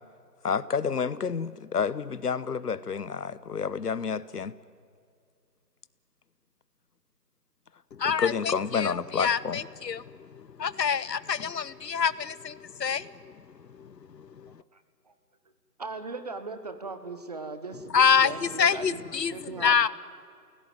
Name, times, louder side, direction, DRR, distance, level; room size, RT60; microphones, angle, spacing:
voice 1, 0.4-4.5 8.0-9.6, left 6 dB, 70° left, 18 dB, 1.2 m, -29 dB
voice 2, 7.9-10.0 10.3-13.3 13.8-13.9 14.4-14.5 17.9-19.9, left 7 dB, 85° left, 18 dB, 0.9 m, -26 dB
voice 3, 15.8-19.0 19.3-19.9, right 3 dB, 25° right, 9 dB, 1.1 m, -38 dB
29.5 x 17.0 x 9.4 m, 2.3 s
figure-of-eight pair, 160°, 49 cm